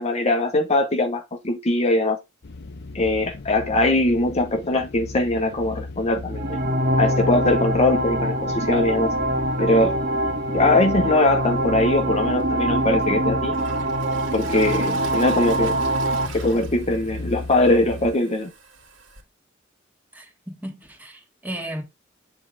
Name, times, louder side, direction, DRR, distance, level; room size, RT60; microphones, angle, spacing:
voice 1, 0.0-2.2 2.9-6.6 7.0-9.1 9.6-10.0 10.5-13.5 14.3-15.8 16.3-18.5, left 2 dB, 35° left, 0.9 m, -21 dB
sound 1, 2.4-18.2, left 2 dB, 60° left, 0.7 m, -37 dB
sound 2, 6.3-16.3, right 1 dB, 50° right, 1.4 m, -24 dB
Toilet flush, 12.4-12.5 13.0-19.2, right 4 dB, 65° right, 2.1 m, -42 dB
voice 2, 20.1-21.8, right 1 dB, 10° right, 1.8 m, -35 dB
8.0 x 3.8 x 4.7 m
head